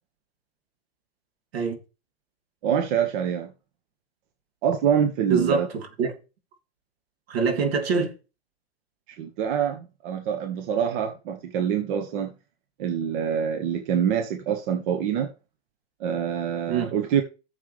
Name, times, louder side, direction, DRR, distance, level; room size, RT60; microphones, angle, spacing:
voice 1, 2.6-3.5 4.6-5.7 9.2-12.3 12.8-15.3 16.0-17.2, right 8 dB, 55° right, 1.6 m, -25 dB
voice 2, 5.3-6.1 7.3-8.1 16.7-16.9, right 5 dB, 75° right, 3.0 m, -25 dB
12.5 x 7.3 x 3.4 m
hypercardioid pair, 125°, 31 cm